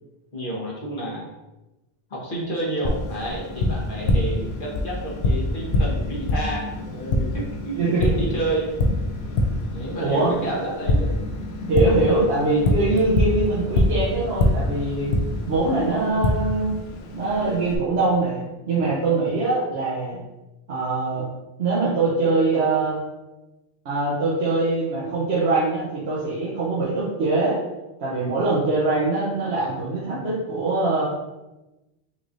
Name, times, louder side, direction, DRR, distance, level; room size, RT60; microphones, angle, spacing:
voice 1, 0.3-1.2 2.1-8.7 9.7-11.1 19.3-19.4, right 1 dB, 55° left, -4 dB, 1.3 m, -30 dB
Tap, 2.8-17.8, left 2 dB, 85° left, 0.9 m, -25 dB
voice 2, 7.8-8.2 10.0-10.3 11.7-15.1 15.5-16.8 17.1-20.2 20.7-21.3 21.6-23.0 23.8-27.6 28.0-31.1, right 3 dB, 90° right, -8 dB, 1.2 m, -23 dB
5.6 x 3.2 x 2.6 m, 1.0 s
omnidirectional pair, 1.0 m